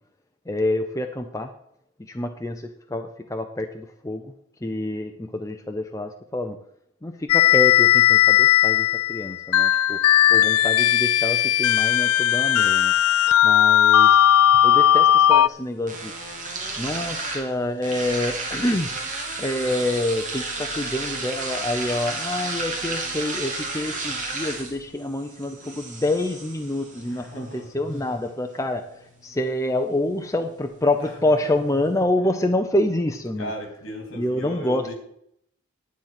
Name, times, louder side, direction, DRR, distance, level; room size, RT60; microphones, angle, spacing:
voice 1, 0.5-1.5 2.0-4.3 4.6-6.6 7.0-10.0 10.3-12.9 13.4-14.2 14.6-16.1 16.8-18.9 19.4-33.5 34.1-34.9, left 1 dB, 15° left, 5 dB, 0.6 m, -27 dB
sound 1, 7.3-15.5, left 12 dB, 85° left, 0.3 m, -17 dB
sound 2, 14.0-32.0, right 3 dB, 35° right, 2.5 m, -34 dB
voice 2, 26.9-27.7 31.0-31.1 31.4-31.5 32.2-32.4 33.4-34.9, equal, 65° left, 3 dB, 3.3 m, -37 dB
10.5 x 8.8 x 5.9 m, 0.71 s
head